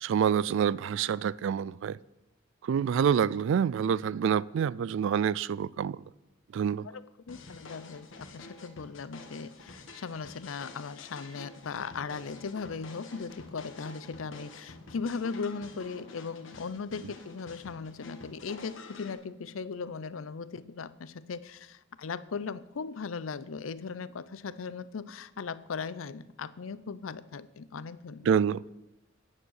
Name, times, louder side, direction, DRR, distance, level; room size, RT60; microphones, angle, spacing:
voice 1, 0.0-2.0 2.6-6.0 6.5-6.9 28.3-28.6, right 7 dB, 65° right, 0.3 m, -27 dB
voice 2, 6.8-28.3, left 5 dB, 85° left, 0.5 m, -38 dB
sound 1, 7.3-19.1, left 3 dB, 70° left, 1.4 m, -49 dB
9.8 x 8.9 x 6.5 m
head